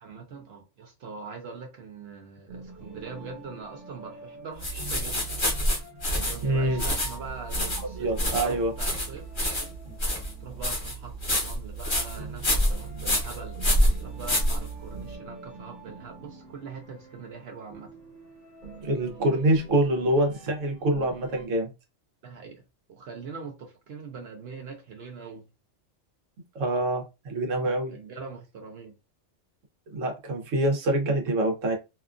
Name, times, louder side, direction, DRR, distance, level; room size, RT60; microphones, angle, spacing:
voice 1, 0.0-5.3 6.3-9.8 10.4-13.6 14.0-17.9 22.2-22.6 22.9-25.5 27.9-28.9, right 5 dB, 65° right, 0.8 m, -42 dB
sound 1, 2.5-21.5, right 2 dB, 45° right, 1.1 m, -46 dB
sound 2, 4.6-15.1, equal, 25° left, 0.8 m, -27 dB
voice 2, 6.4-6.8 7.8-8.7 18.8-21.7 26.5-28.0 29.9-31.7, right 1 dB, 85° right, 1.2 m, -25 dB
2.8 x 2.3 x 2.4 m
omnidirectional pair, 1.3 m